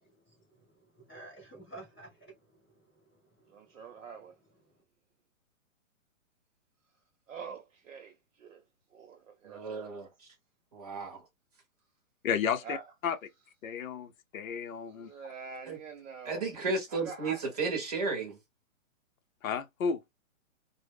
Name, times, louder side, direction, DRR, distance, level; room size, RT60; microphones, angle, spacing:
voice 1, 0.0-4.0 4.7-4.8, right 2 dB, 10° left, 0.6 m, -53 dB
voice 2, 3.5-4.4 7.3-8.6 8.9-10.1 12.6-12.9 14.9-16.4 16.9-17.4, right 5 dB, 70° right, 0.8 m, -45 dB
voice 3, 9.4-10.3 10.7-11.2 15.7-15.8 16.2-18.4, right 4 dB, 30° right, 0.8 m, -34 dB
voice 4, 12.2-12.8 13.0-13.1 13.6-15.1 19.4-20.0, left 7 dB, 75° left, 0.6 m, -32 dB
2.0 x 2.0 x 3.3 m
hypercardioid pair, 175°, 41 cm